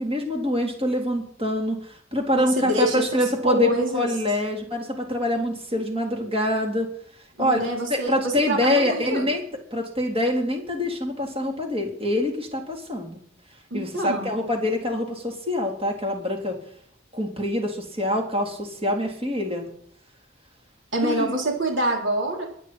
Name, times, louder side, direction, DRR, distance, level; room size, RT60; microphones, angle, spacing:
voice 1, 0.0-6.9 7.4-7.6 7.9-9.4 9.7-13.2 13.7-16.6 17.1-19.7 21.0-21.3, left 1 dB, 30° right, 1 dB, 3.7 m, -25 dB
voice 2, 2.3-4.1 7.4-9.3 13.7-14.4 20.9-22.4, right 1 dB, 65° right, 0 dB, 4.4 m, -26 dB
23.0 x 9.9 x 4.5 m, 0.62 s
head